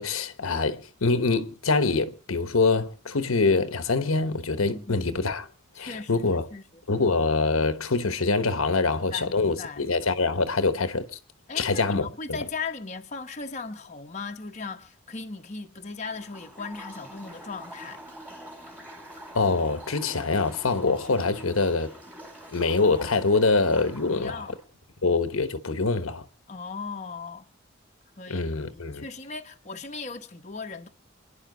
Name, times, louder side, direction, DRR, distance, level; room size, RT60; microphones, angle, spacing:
voice 1, 0.0-5.4 5.8-6.5 6.9-11.2 11.5-12.1 19.3-21.9 22.5-24.5 25.0-26.2 28.3-29.0, left 3 dB, 80° left, 1.1 m, -24 dB
voice 2, 4.7-5.3 5.7-6.8 8.8-9.8 11.5-18.0 24.1-24.5 26.5-27.4 28.2-30.9, left 4 dB, 35° left, 0.9 m, -38 dB
sound 1, 16.0-24.6, equal, 10° right, 2.7 m, -45 dB
28.5 x 10.5 x 3.9 m
head